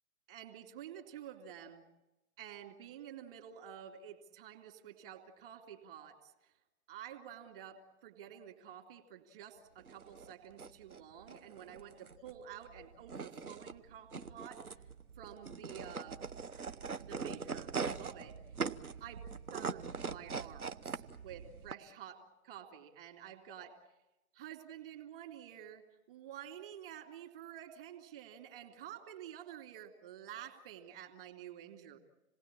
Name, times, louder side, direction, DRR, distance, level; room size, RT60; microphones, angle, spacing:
voice 1, 0.3-1.9 2.4-6.5 6.9-14.6 15.2-16.2 17.0-18.4 19.0-23.8 24.3-32.0, right 9 dB, 40° right, 5 dB, 2.6 m, -50 dB
sound 1, 9.8-21.7, right 5 dB, 80° right, 1.0 m, -42 dB
27.0 x 19.0 x 8.8 m, 1.0 s
figure-of-eight pair, 125°, 43 cm